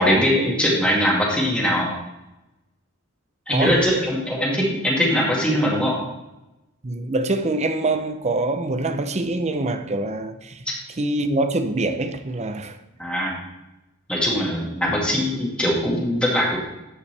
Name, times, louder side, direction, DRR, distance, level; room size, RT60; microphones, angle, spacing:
voice 1, 0.0-1.9 3.5-6.0 13.0-13.4 14.1-16.6, equal, 5° left, 2.3 m, -21 dB
voice 2, 3.5-3.9 6.8-12.8, right 2 dB, 35° right, 0.7 m, -25 dB
13.5 x 5.7 x 3.4 m
head